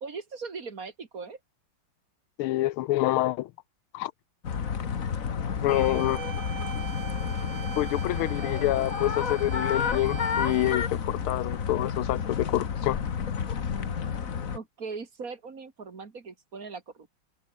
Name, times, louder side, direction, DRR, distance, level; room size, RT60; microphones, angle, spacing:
voice 1, 0.0-1.4 13.7-14.0 14.5-17.1, right 4 dB, 45° right, 2.4 m, -40 dB
voice 2, 2.4-3.5 3.9-4.1 5.6-6.2 7.8-13.0, left 16 dB, 90° left, 1.6 m, -27 dB
sound 1, 4.4-14.6, left 7 dB, 45° left, 1.7 m, -30 dB
sound 2, 5.7-10.7, right 8 dB, 70° right, 2.4 m, -41 dB
omnidirectional pair, 2.3 m